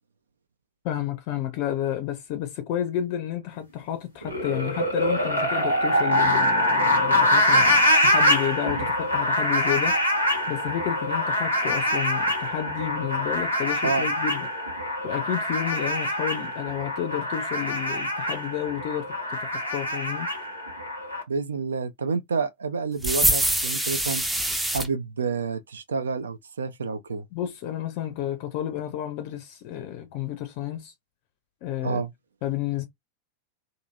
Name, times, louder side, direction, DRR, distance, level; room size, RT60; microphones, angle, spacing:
voice 1, 0.8-14.5 15.0-20.3 27.3-30.9 31.6-32.0 32.4-32.9, left 11 dB, 45° left, 0.5 m, -31 dB
sound 1, 4.2-21.2, left 1 dB, 90° right, 1.3 m, -24 dB
voice 2, 21.3-24.2 24.7-27.2 31.8-32.1, right 5 dB, 70° right, 0.3 m, -29 dB
sound 2, 23.0-24.9, right 1 dB, 5° right, 0.5 m, -24 dB
2.7 x 2.6 x 2.2 m
figure-of-eight pair, 90°, 0 cm